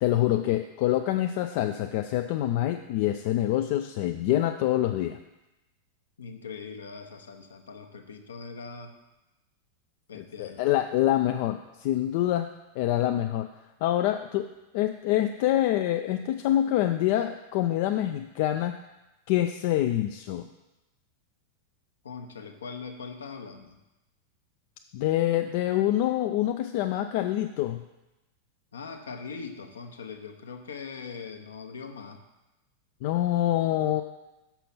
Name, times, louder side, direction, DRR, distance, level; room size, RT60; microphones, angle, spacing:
voice 1, 0.0-5.2 10.1-12.5 12.8-13.5 13.8-14.5 14.7-18.8 19.3-20.5 24.9-27.8 33.0-34.0, left 13 dB, 50° left, 6 dB, 0.4 m, -26 dB
voice 2, 6.2-9.0 10.1-10.6 22.0-23.8 28.7-32.2, left 5 dB, 70° left, 5 dB, 0.8 m, -41 dB
6.8 x 5.8 x 5.8 m, 0.99 s
figure-of-eight pair, 90°, 0 cm